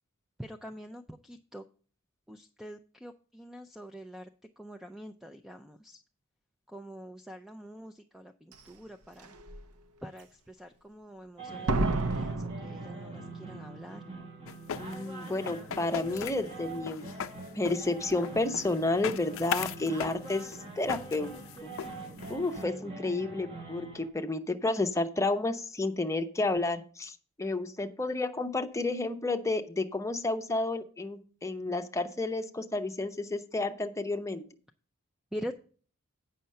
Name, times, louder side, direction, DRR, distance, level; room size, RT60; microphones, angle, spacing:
voice 1, 0.4-1.6 2.3-4.3 4.6-6.0 6.7-9.3 10.0-14.0 22.3-22.9 35.3-35.5, equal, ahead, 6 dB, 0.4 m, -45 dB
Slam, 8.5-8.6 9.2-9.6 11.7-13.6 13.8-13.9, right 2 dB, 80° right, 0.7 m, -31 dB
sound 1, 11.4-24.1, right 2 dB, 30° right, 1.5 m, -44 dB
sound 2, 14.5-22.6, left 8 dB, 65° left, 0.5 m, -39 dB
voice 2, 14.8-17.1 17.5-21.3 21.6-21.7 22.3-34.4, left 2 dB, 15° left, 6 dB, 0.7 m, -31 dB
8.8 x 5.6 x 5.4 m, 0.41 s
head